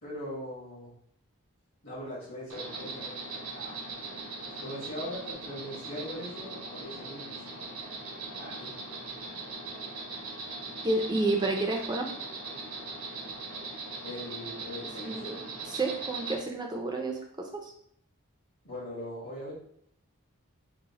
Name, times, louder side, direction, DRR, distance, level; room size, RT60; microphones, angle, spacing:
voice 1, 0.0-0.9 1.8-3.8 4.6-7.4 8.4-8.7 14.0-15.3 18.6-19.6, left 1 dB, 60° left, -8 dB, 1.1 m, -40 dB
Insect, 2.5-16.4, right 3 dB, 80° right, 0.8 m, -40 dB
voice 2, 10.8-12.1 15.0-15.2 15.8-17.7, right 2 dB, 20° right, 2 dB, 0.3 m, -30 dB
2.9 x 2.1 x 3.9 m, 0.68 s
head